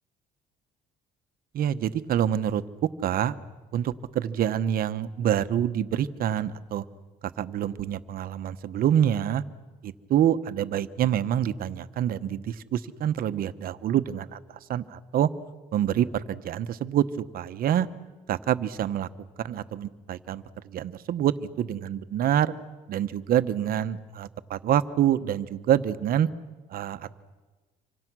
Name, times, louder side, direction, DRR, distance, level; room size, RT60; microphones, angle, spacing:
voice 1, 1.5-2.6 3.0-3.4 3.7-6.8 7.4-9.4 9.8-15.3 15.7-17.9 18.3-19.1 19.4-22.5 22.9-26.3 26.7-27.2, right 10 dB, 60° right, 12 dB, 1.0 m, -26 dB
26.5 x 25.0 x 6.2 m, 1.3 s
cardioid pair, 110°, 17 cm